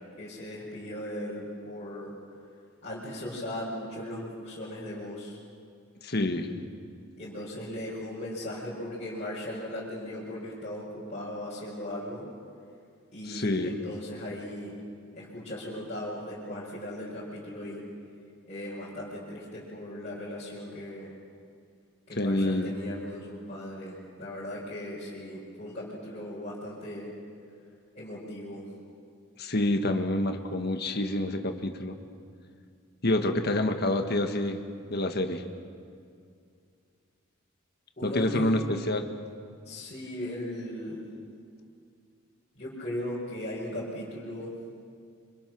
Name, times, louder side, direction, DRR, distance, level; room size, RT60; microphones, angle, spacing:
voice 1, 0.2-2.1 2.8-5.4 7.2-12.3 13.1-14.7 15.1-17.8 18.5-21.1 22.1-27.1 27.9-28.6 38.0-38.4 39.7-41.0 42.6-44.5, left 1 dB, 30° left, -8 dB, 5.2 m, -37 dB
voice 2, 6.0-6.5 13.3-13.7 22.2-22.7 29.4-32.0 33.0-34.6 34.9-35.4 38.0-39.0, left 1 dB, 45° left, 6 dB, 1.5 m, -27 dB
27.0 x 25.5 x 6.1 m, 2.3 s
head